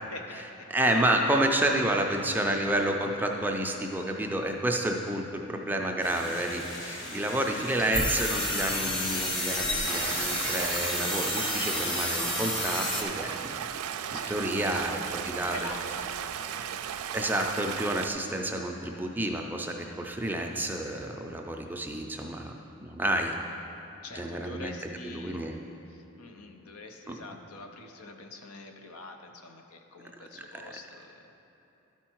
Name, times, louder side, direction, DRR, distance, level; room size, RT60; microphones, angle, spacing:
voice 1, 0.1-0.7 1.3-2.6 9.0-9.3 14.1-15.0 15.5-16.9 24.0-25.4 25.9-31.1, left 2 dB, 85° left, 5 dB, 0.7 m, -46 dB
voice 2, 0.7-13.5 14.3-15.7 17.1-22.5 22.8-23.3 24.1-24.7 25.0-25.5 27.1-27.2 30.5-30.6, right 1 dB, 10° right, 2 dB, 0.4 m, -29 dB
sound 1, 6.0-11.7, left 1 dB, 60° left, 1.5 m, -40 dB
sound 2, 7.9-13.0, left 1 dB, 25° left, 0.8 m, -30 dB
Stream, 9.8-18.1, right 9 dB, 90° right, 0.3 m, -36 dB
12.0 x 4.6 x 4.4 m, 2.9 s
head